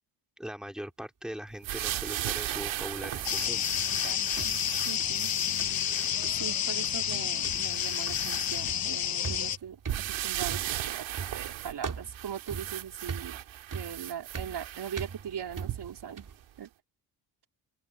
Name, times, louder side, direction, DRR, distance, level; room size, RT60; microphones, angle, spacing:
voice 1, 0.4-3.7, equal, ahead, 4.1 m, -40 dB
sound 1, 1.6-6.2 6.8-6.9 7.4-9.0 9.9-16.1 16.6-16.7, right 13 dB, 80° right, 2.4 m, -37 dB
sound 2, 2.5-4.1 4.4-5.3 5.6-5.9 6.2-6.6 6.8-7.2 7.4-16.4, right 5 dB, 45° right, 3.4 m, -41 dB
sound 3, 3.2-9.6, left 10 dB, 50° left, 1.0 m, -30 dB
voice 2, 4.0-4.5 4.8-5.3 6.4-9.8 10.1-11.1 11.3-13.4 13.7-16.3 16.6-16.7, right 8 dB, 60° right, 4.4 m, -40 dB
open air
supercardioid pair, 60°, 45 cm